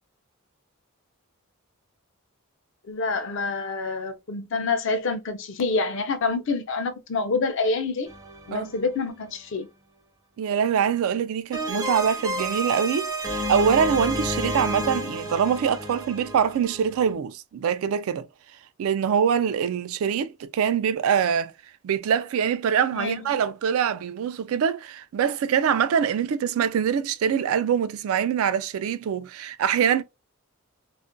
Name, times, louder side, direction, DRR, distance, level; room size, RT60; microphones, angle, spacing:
voice 1, 2.9-8.1 8.5-9.7 22.9-23.4, left 4 dB, 60° left, 0.5 m, -27 dB
sound 1, 8.1-9.1 11.5-17.1, equal, 15° right, 0.5 m, -31 dB
voice 2, 10.4-18.3 18.8-21.5 21.8-30.0, right 7 dB, 75° right, 0.3 m, -24 dB
2.4 x 2.1 x 2.5 m
head